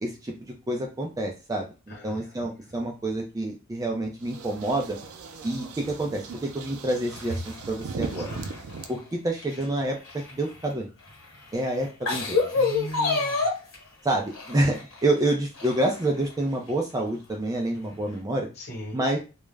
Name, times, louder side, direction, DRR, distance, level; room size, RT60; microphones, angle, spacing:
voice 1, 0.0-1.7 2.0-5.0 5.4-8.3 8.9-10.9 11.5-12.4 14.0-18.5 18.9-19.2, right 1 dB, 15° right, 1 dB, 0.4 m, -28 dB
voice 2, 1.9-2.5 8.3-8.5 12.5-13.4 18.6-19.0, left 1 dB, 50° left, -1 dB, 1.2 m, -38 dB
sound 1, 4.2-8.9, right 4 dB, 80° right, 0.4 m, -39 dB
sound 2, 7.1-9.0 9.4-10.7 11.3-11.4 11.9-13.8 14.3-15.1 15.6-16.3 16.7-16.8 17.9-18.0, left 3 dB, 70° left, 1.0 m, -28 dB
2.3 x 2.0 x 3.2 m, 0.30 s
head